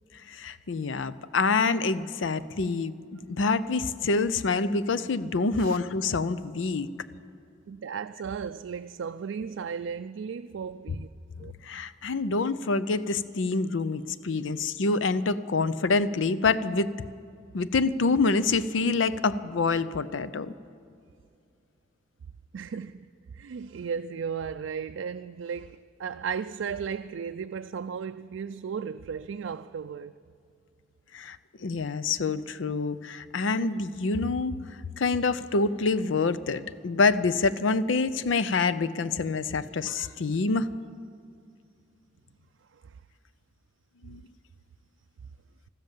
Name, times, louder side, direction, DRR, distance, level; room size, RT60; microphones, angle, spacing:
voice 1, 0.3-6.9 11.4-16.9 17.5-20.5 31.1-34.5 35.0-40.7 44.0-44.2, left 4 dB, 85° left, 0.6 m, -26 dB
voice 2, 7.7-11.1 11.4-11.5 22.5-23.1 23.3-30.2 42.7-43.0, right 6 dB, 80° right, 0.4 m, -35 dB
14.5 x 13.0 x 7.4 m
head